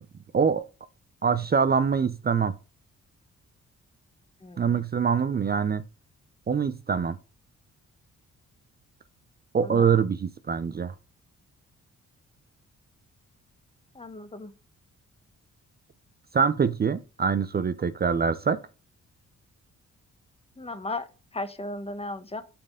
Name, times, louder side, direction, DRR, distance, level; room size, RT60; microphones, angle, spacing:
voice 1, 1.2-2.5 4.6-5.8 6.5-7.2 9.5-10.9 16.3-18.6, right 6 dB, 30° right, 0.5 m, -24 dB
voice 2, 14.0-14.5 20.6-21.0 21.3-22.4, left 2 dB, 20° left, 1.0 m, -35 dB
8.5 x 4.4 x 3.7 m
cardioid pair, 70°, 30 cm